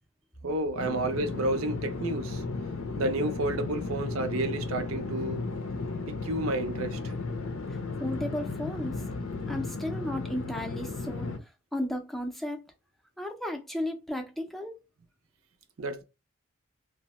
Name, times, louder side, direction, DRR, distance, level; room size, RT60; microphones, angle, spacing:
voice 1, 0.4-2.4 3.0-5.5 6.1-7.1 15.8-16.0, right 2 dB, 80° right, 0.6 m, -31 dB
sound 1, 0.8-11.4, left 3 dB, 75° left, 0.5 m, -35 dB
voice 2, 7.7-9.0 9.5-11.3 11.7-12.6 13.2-14.8, left 1 dB, ahead, 0.4 m, -34 dB
2.7 x 2.0 x 2.9 m
head